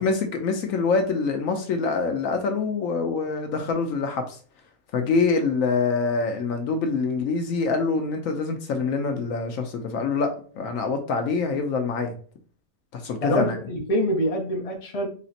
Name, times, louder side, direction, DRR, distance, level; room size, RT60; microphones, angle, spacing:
voice 1, 0.0-4.4 4.9-12.1 12.9-13.6, left 4 dB, 70° left, 1.0 m, -25 dB
voice 2, 13.2-15.1, equal, 30° left, 0.8 m, -25 dB
4.1 x 2.9 x 2.7 m
omnidirectional pair, 1.5 m